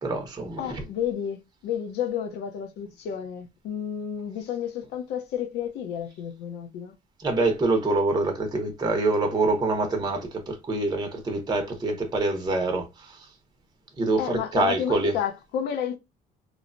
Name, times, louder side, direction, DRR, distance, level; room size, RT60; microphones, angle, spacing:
voice 1, 0.0-0.8 7.2-13.2 14.0-15.1, right 2 dB, 25° right, 0.7 m, -25 dB
voice 2, 0.6-6.9 14.2-16.0, left 9 dB, 80° left, 0.7 m, -31 dB
3.1 x 2.0 x 2.5 m
cardioid pair, 110°, 17 cm